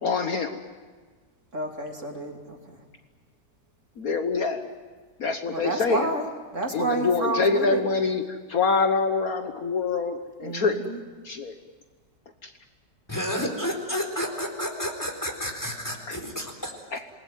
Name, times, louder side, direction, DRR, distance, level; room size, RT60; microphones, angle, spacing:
voice 1, 0.0-0.6 4.0-4.6 5.2-6.1 6.7-10.8 11.2-11.5 12.4-12.5 16.1-16.2 16.9-17.0, left 4 dB, 55° left, 6 dB, 1.6 m, -25 dB
voice 2, 1.5-2.8 5.5-6.2 6.5-7.8 10.4-11.0, right 2 dB, 45° right, 2 dB, 3.2 m, -30 dB
voice 3, 13.1-16.7, equal, 10° left, 2 dB, 4.1 m, -30 dB
27.5 x 19.5 x 9.3 m, 1.4 s
omnidirectional pair, 1.9 m